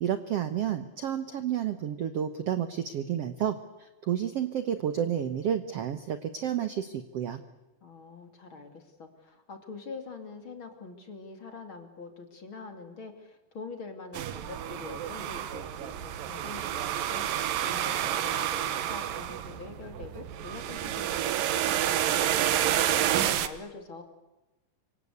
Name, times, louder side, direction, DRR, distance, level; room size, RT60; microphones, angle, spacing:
voice 1, 0.0-7.4, right 9 dB, 65° right, 10 dB, 1.6 m, -31 dB
voice 2, 7.8-22.5 23.0-24.0, left 4 dB, 40° left, 6 dB, 3.0 m, -44 dB
sound 1, 14.1-23.5, right 11 dB, 80° right, 2.9 m, -29 dB
26.5 x 24.5 x 8.4 m, 1.0 s
omnidirectional pair, 4.0 m